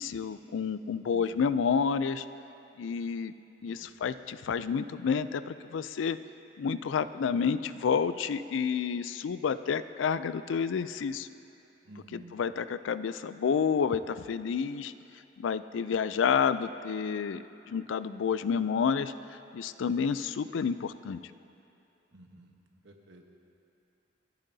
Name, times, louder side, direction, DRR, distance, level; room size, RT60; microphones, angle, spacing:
voice 1, 0.0-2.3 2.8-3.3 3.6-6.2 6.6-11.3 12.1-14.9 15.4-19.1 19.5-21.2, left 6 dB, 90° left, 14 dB, 0.4 m, -29 dB
voice 2, 1.1-1.5 3.6-3.9 11.8-12.4 22.1-22.6 22.8-23.3, right 1 dB, 70° right, 2 dB, 1.2 m, -52 dB
27.0 x 9.1 x 2.7 m, 2.8 s
head